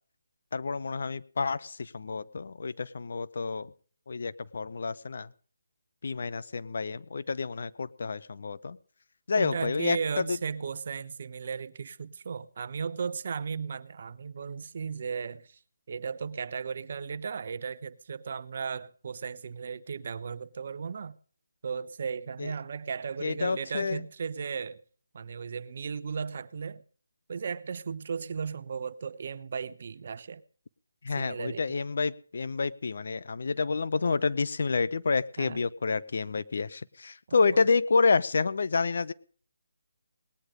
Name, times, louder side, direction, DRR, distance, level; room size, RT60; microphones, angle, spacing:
voice 1, 0.5-3.7 4.1-5.3 6.0-8.8 9.3-10.4 22.4-22.5 23.2-24.0 31.0-39.1, left 4 dB, 60° left, 0.8 m, -29 dB
voice 2, 9.3-15.6 15.9-21.2 21.6-24.8 25.1-26.8 27.3-30.4 31.2-31.8 35.4-35.6 37.3-37.7, right 6 dB, 50° right, 0.9 m, -36 dB
19.0 x 9.8 x 5.1 m
figure-of-eight pair, 155°, 0 cm